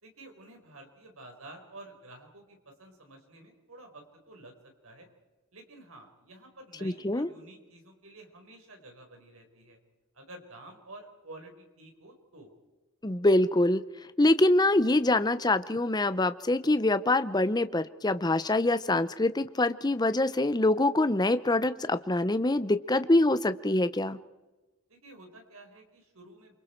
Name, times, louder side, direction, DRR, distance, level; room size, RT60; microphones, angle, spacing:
voice 1, 0.0-4.5 4.8-5.1 5.5-9.8 10.1-12.5 24.9-26.5, right 2 dB, 75° right, 3 dB, 4.6 m, -50 dB
voice 2, 6.8-7.3 13.0-13.8 14.2-24.2, left 2 dB, 20° left, 12 dB, 0.7 m, -25 dB
27.5 x 25.0 x 4.5 m, 1.2 s
head